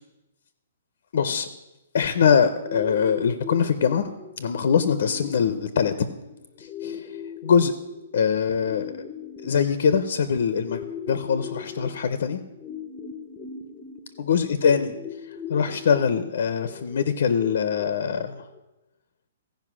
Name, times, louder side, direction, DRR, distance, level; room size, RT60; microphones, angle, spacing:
voice 1, 1.1-1.5 1.9-4.1 4.4-6.1 6.6-7.1 7.4-7.7 8.1-9.0 9.4-10.8 11.1-12.4 14.2-18.5, left 6 dB, 50° left, 12 dB, 0.5 m, -23 dB
sound 1, 2.6-18.6, left 7 dB, 5° left, 0.5 m, -39 dB
15.0 x 5.2 x 6.1 m, 0.98 s
hypercardioid pair, 180°, 0 cm